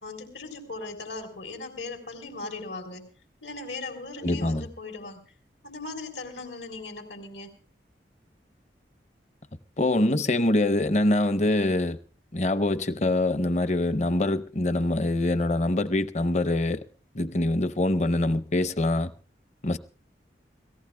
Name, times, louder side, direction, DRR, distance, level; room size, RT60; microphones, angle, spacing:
voice 1, 0.0-3.0 3.4-5.2 5.6-7.5, left 3 dB, 85° left, 3.9 m, -38 dB
voice 2, 4.2-4.7 9.8-12.0 12.3-16.8 17.1-19.1 19.6-19.8, left 1 dB, 40° left, 0.7 m, -24 dB
29.0 x 18.0 x 2.2 m
head